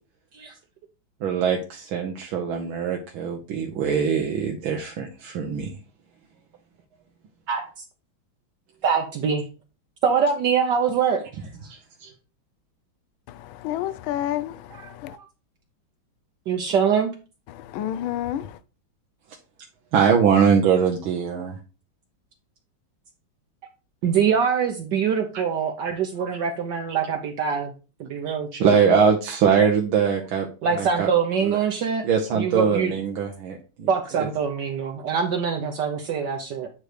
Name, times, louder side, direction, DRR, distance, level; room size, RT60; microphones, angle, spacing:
voice 1, 1.2-5.7 12.0-12.1 19.9-21.6 28.3-30.5 30.7-31.1 31.4-31.6 32.0-33.9 34.2-34.3, right 6 dB, 85° right, 1.7 m, -22 dB
voice 2, 7.5-7.8 8.8-9.4 10.0-11.2 14.7-14.9 16.5-17.1 24.0-27.7 28.0-28.7 30.6-32.0 32.3-33.0 33.9-36.7, right 6 dB, 65° right, 1.4 m, -24 dB
voice 3, 13.3-15.2 17.5-18.6, left 12 dB, 90° left, 1.4 m, -30 dB
9.1 x 3.2 x 4.9 m
omnidirectional pair, 2.2 m